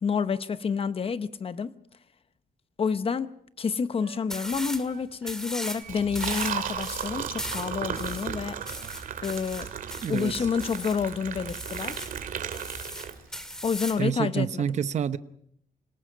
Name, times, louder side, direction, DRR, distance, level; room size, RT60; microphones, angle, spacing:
voice 1, 0.0-1.7 2.8-3.3 3.6-8.6 9.2-9.7 10.1-12.1 13.6-14.6, left 6 dB, 40° left, 0.9 m, -29 dB
Wind instrument woodwind instrument, 4.0-9.6, right 7 dB, 85° right, 4.7 m, -53 dB
sound 1, 4.3-4.9 5.2-5.8 6.1-11.0 11.5-12.2 12.5-14.1, equal, 5° left, 2.0 m, -38 dB
Liquid, 5.8-13.5, right 7 dB, 70° right, 2.1 m, -35 dB
voice 2, 10.0-10.5 14.0-15.2, right 8 dB, 50° right, 0.8 m, -28 dB
27.5 x 19.0 x 5.1 m
cardioid pair, 130°, 15 cm